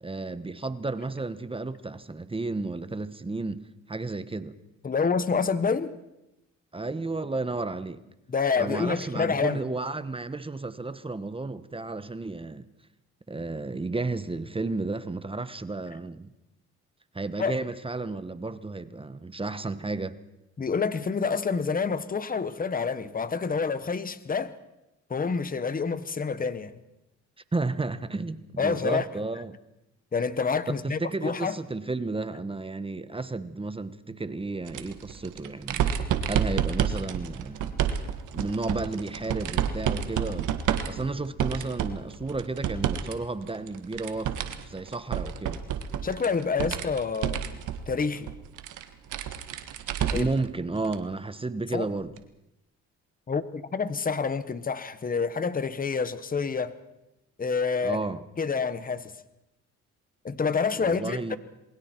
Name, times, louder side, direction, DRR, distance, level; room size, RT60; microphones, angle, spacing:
voice 1, 0.0-4.6 6.7-8.1 8.6-12.7 13.3-16.3 17.1-20.2 27.5-29.6 30.8-37.8 38.3-44.3 44.7-45.6 50.1-52.1 57.8-58.2 60.8-61.4, right 3 dB, 20° right, 1.1 m, -32 dB
voice 2, 4.8-5.9 8.3-9.6 17.4-17.6 20.6-24.6 25.1-26.7 28.6-29.0 30.1-31.6 46.0-47.4 47.9-48.3 50.1-50.3 51.7-51.8 53.3-56.7 57.4-58.0 58.4-59.1 60.2-61.4, left 5 dB, 30° left, 1.3 m, -28 dB
sound 1, 34.6-43.1 43.4-50.4 50.8-51.0 52.2-52.3, right 9 dB, 80° right, 1.6 m, -30 dB
27.5 x 21.5 x 4.5 m
cardioid pair, 90°, 30 cm